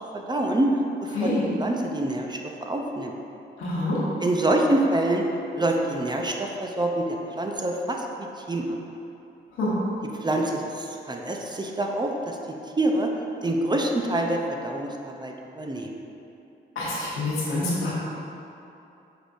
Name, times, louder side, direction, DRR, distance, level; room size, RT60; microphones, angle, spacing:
voice 1, 0.1-0.7 1.2-3.1 4.2-5.2 5.6-8.7 10.2-12.4 12.8-13.1 13.4-16.0, right 1 dB, 20° right, 1 dB, 0.5 m, -26 dB
voice 2, 1.1-1.5 3.6-4.0 9.6-9.7 16.7-17.9, left 2 dB, 85° left, -7 dB, 1.2 m, -26 dB
5.8 x 3.5 x 2.6 m, 2.8 s
supercardioid pair, 55°, 21 cm